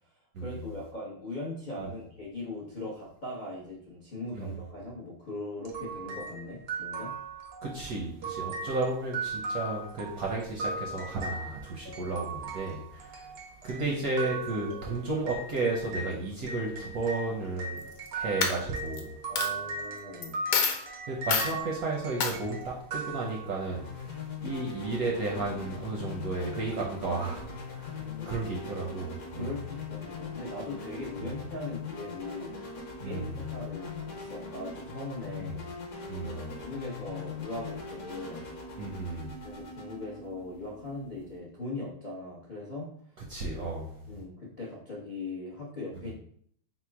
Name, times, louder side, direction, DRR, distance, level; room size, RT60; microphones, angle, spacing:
voice 1, 0.4-7.1 19.3-20.4 27.9-28.4 29.4-32.5 33.0-35.6 36.0-38.5 39.4-42.9 44.1-46.1, left 2 dB, 90° left, -5 dB, 0.4 m, -40 dB
sound 1, 5.6-16.1 16.5-23.8, right 3 dB, 85° right, 0.5 m, -38 dB
voice 2, 7.6-13.3 13.6-17.8 18.1-19.1 21.1-29.5 31.2-31.3 33.0-33.5 35.4-35.6 36.1-36.6 38.8-39.4 43.3-44.0, right 3 dB, 65° right, -2 dB, 0.9 m, -33 dB
Coin (dropping), 17.8-18.1 18.4-19.0 19.4-19.5 20.2-20.3 20.5-20.8 21.3-21.5 22.2-22.3, left 5 dB, 70° left, 1.3 m, -26 dB
sound 2, 23.6-41.4, left 4 dB, 50° left, 1.2 m, -41 dB
4.3 x 2.1 x 4.5 m, 0.62 s
omnidirectional pair, 2.3 m